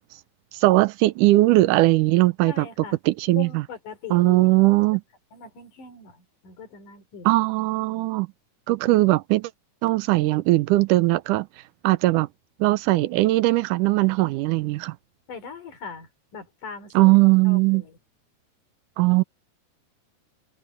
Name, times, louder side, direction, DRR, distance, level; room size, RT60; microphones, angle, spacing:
voice 1, 0.5-2.7 3.1-3.5 4.1-5.0 7.3-8.3 8.7-9.5 9.8-11.5 11.8-12.3 12.6-15.0 17.0-17.8 19.0-19.2, right 19 dB, 90° right, 2.2 m, -19 dB
voice 2, 2.5-3.0 3.4-4.7 5.3-7.4 15.3-17.1 17.4-18.0, left 6 dB, 80° left, 4.7 m, -40 dB
omnidirectional pair, 3.6 m